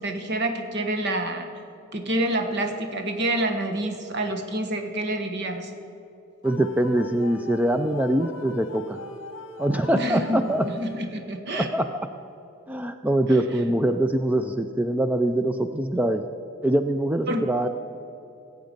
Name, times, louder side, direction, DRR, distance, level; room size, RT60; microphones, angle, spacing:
voice 1, 0.0-1.5 1.9-5.7 9.9-11.7 13.6-13.7 17.3-17.5, right 1 dB, 55° right, 5 dB, 1.3 m, -28 dB
sound 1, 6.4-11.3, left 3 dB, 60° left, 1.2 m, -41 dB
voice 2, 6.4-9.0 9.6-10.7 11.5-11.9 12.7-16.2 16.6-17.7, right 1 dB, 5° right, 8 dB, 0.3 m, -23 dB
18.5 x 8.0 x 5.3 m, 2.8 s
head